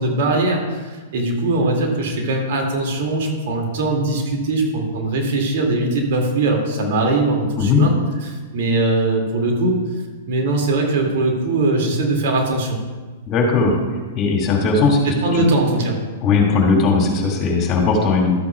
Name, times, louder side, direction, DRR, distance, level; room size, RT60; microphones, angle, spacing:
voice 1, 0.0-7.9 8.3-9.8 10.3-12.8 15.0-16.0, right 2 dB, 60° right, 1 dB, 2.3 m, -20 dB
voice 2, 13.3-13.8 14.1-15.1 16.2-18.3, left 4 dB, 35° left, -1 dB, 2.2 m, -17 dB
12.5 x 8.6 x 2.4 m, 1.3 s
hypercardioid pair, 110°, 0 cm